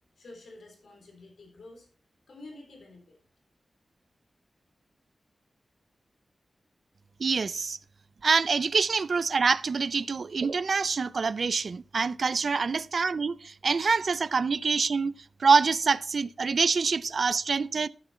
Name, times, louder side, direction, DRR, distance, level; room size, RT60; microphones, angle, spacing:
voice 1, 0.2-1.9 2.3-3.2, left 2 dB, 85° left, 3.6 m, -49 dB
voice 2, 7.2-7.8 8.2-15.1 15.4-17.9, right 5 dB, 65° right, 0.4 m, -25 dB
13.0 x 6.9 x 4.2 m
wide cardioid pair, 100°, 0 cm